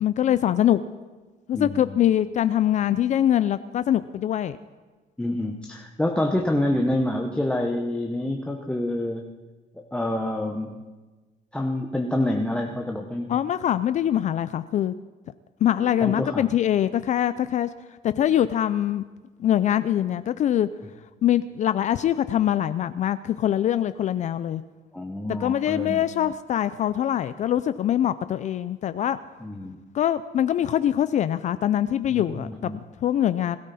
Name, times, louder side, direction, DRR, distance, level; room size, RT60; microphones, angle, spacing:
voice 1, 0.0-0.8 1.5-4.6 13.3-14.9 15.6-17.7 18.0-19.0 19.4-20.7 21.2-24.6 25.4-29.2 29.9-33.6, left 11 dB, 45° left, 13 dB, 0.5 m, -23 dB
voice 2, 1.5-2.0 5.2-9.3 9.8-10.8 11.5-13.4 16.0-16.5 24.9-26.0 29.4-29.8 32.1-32.8, left 1 dB, 5° left, 1 dB, 1.0 m, -27 dB
20.5 x 13.0 x 4.2 m, 1.3 s
cardioid pair, 120°, 16 cm